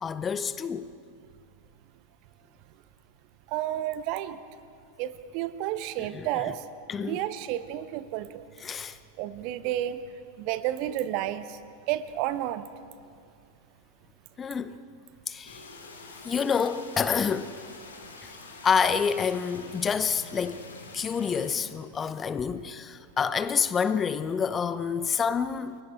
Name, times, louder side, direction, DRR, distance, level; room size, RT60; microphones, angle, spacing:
voice 1, 0.0-0.9 6.0-6.4 6.9-7.2 8.6-9.0 14.4-14.8 15.3-15.7 16.2-17.5 18.2-18.3 18.6-20.6 20.9-25.8, left 6 dB, 20° left, 0.7 m, -28 dB
voice 2, 3.5-4.4 5.0-6.6 7.0-8.4 9.2-10.0 10.4-11.6 11.9-12.6, right 13 dB, 45° right, 0.9 m, -31 dB
sound 1, 15.4-21.6, left 3 dB, 70° left, 3.2 m, -46 dB
30.0 x 23.0 x 4.5 m
figure-of-eight pair, 90°, 0 cm